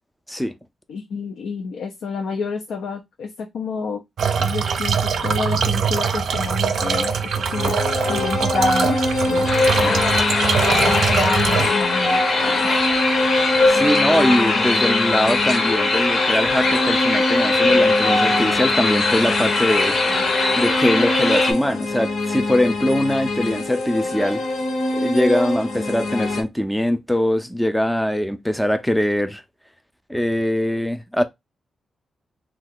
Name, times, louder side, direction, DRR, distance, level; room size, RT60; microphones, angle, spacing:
voice 1, 0.9-4.0 4.4-10.1 10.7-12.7, left 4 dB, 90° left, 0.4 m, -29 dB
sound 1, 4.2-11.7, right 6 dB, 70° right, 0.4 m, -22 dB
sound 2, 6.6-26.4, left 2 dB, 75° left, 1.0 m, -23 dB
sound 3, 9.5-21.5, left 3 dB, 45° left, 0.7 m, -22 dB
voice 2, 13.7-20.0 20.6-24.4 24.9-29.4 30.1-31.2, left 1 dB, 5° left, 0.4 m, -22 dB
2.7 x 2.3 x 3.6 m
wide cardioid pair, 140°, 0 cm